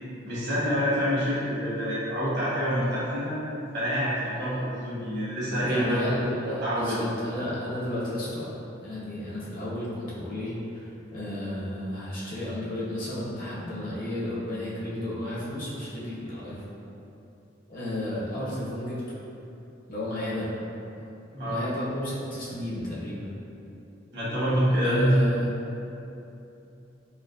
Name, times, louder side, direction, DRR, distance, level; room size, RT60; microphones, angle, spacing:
voice 1, 0.2-3.4 3.7-6.0 6.4-7.0 21.3-21.6 24.1-25.1, equal, 60° right, -10 dB, 1.3 m, -26 dB
voice 2, 5.6-8.5 8.8-16.6 17.7-19.0 19.9-20.5 21.4-23.3 24.8-25.5, left 1 dB, 45° left, -8 dB, 0.8 m, -32 dB
4.3 x 2.1 x 2.5 m, 2.9 s
head